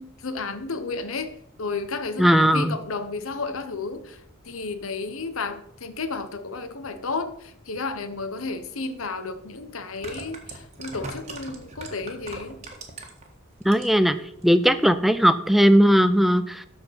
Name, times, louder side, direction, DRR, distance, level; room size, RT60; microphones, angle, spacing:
voice 1, 0.0-1.3 1.6-12.6, left 4 dB, 90° left, 10 dB, 1.0 m, -32 dB
voice 2, 2.2-2.8 13.6-14.2 14.4-16.7, equal, ahead, 12 dB, 0.3 m, -18 dB
sound 1, 8.8-8.9 9.8-13.3 13.6-14.1 14.4-14.5, right 3 dB, 35° right, 1.6 m, -39 dB
13.0 x 4.5 x 5.8 m, 0.73 s
head